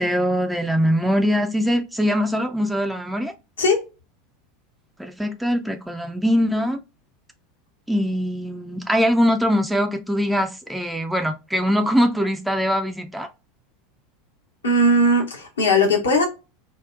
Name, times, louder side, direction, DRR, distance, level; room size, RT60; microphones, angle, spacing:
voice 1, 0.0-3.3 5.0-6.8 7.9-13.3, equal, 5° right, 0.4 m, -22 dB
voice 2, 14.6-16.2, left 1 dB, 75° left, 0.7 m, -18 dB
3.9 x 2.0 x 2.3 m
figure-of-eight pair, 80°, 0 cm